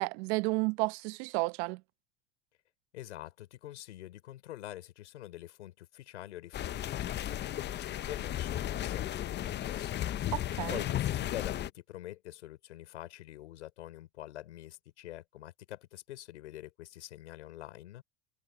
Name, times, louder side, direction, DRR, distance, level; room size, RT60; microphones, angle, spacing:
voice 1, 0.0-1.8 10.3-10.8, right 26 dB, 65° right, 1.1 m, -32 dB
voice 2, 2.9-10.3 10.7-18.0, left 14 dB, 90° left, 5.1 m, -46 dB
sound 1, 6.5-11.7, left 12 dB, 30° left, 0.7 m, -34 dB
supercardioid pair, 100°, 34 cm